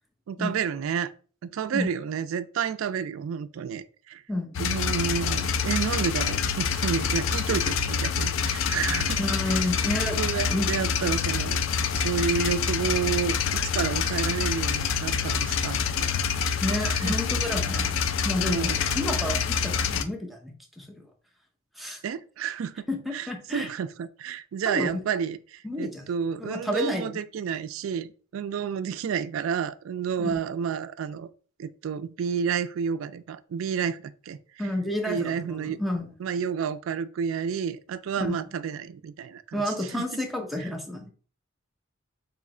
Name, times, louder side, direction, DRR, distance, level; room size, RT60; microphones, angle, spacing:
voice 1, 0.3-1.1 1.5-4.2 4.6-9.2 9.5-9.7 10.1-11.6 11.9-13.4 13.7-16.5 16.8-17.2 18.4-18.8 22.0-22.8 23.1-28.1 28.3-31.3 31.6-34.4 35.0-35.8 36.2-39.6, right 7 dB, 75° right, 0.3 m, -30 dB
voice 2, 4.3-4.7 9.2-10.2 10.5-10.7 16.6-21.0 21.8-22.0 22.9-23.7 24.6-25.0 25.6-26.0 26.4-27.2 30.2-30.4 34.6-36.1 38.2-38.4 39.5-41.1, left 1 dB, ahead, 0.7 m, -30 dB
sound 1, 4.5-20.0, left 6 dB, 65° left, 0.4 m, -26 dB
3.1 x 3.0 x 3.7 m
head